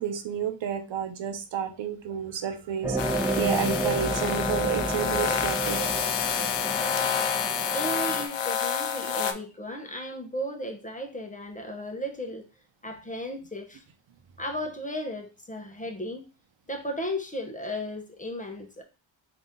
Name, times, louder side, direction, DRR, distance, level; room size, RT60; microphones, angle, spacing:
voice 1, 0.0-5.8 9.1-9.2, right 7 dB, 70° right, 0.8 m, -31 dB
sound 1, 2.8-8.2, right 2 dB, 5° right, 1.0 m, -30 dB
sound 2, 3.0-9.3, left 7 dB, 65° left, 0.7 m, -28 dB
voice 2, 7.7-12.4 12.8-13.8 14.4-16.3 16.7-18.8, equal, 15° left, 0.9 m, -35 dB
3.9 x 2.8 x 3.7 m
cardioid pair, 90°, 47 cm